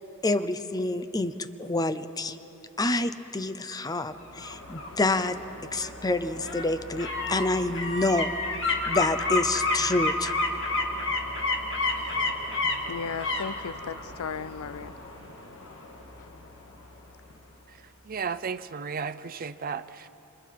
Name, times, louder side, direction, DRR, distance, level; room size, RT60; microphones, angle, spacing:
voice 1, 0.2-1.3 1.6-2.4 2.8-5.4 5.7-8.3 8.9-10.3, left 2 dB, 20° left, 11 dB, 0.6 m, -27 dB
sound 1, 4.1-16.9 17.3-17.4, left 2 dB, 60° left, 2.1 m, -31 dB
voice 2, 12.9-14.9, left 6 dB, 85° left, 17 dB, 0.5 m, -35 dB
voice 3, 18.1-20.1, right 6 dB, 40° right, 13 dB, 0.5 m, -34 dB
27.5 x 25.0 x 4.7 m, 3.0 s
head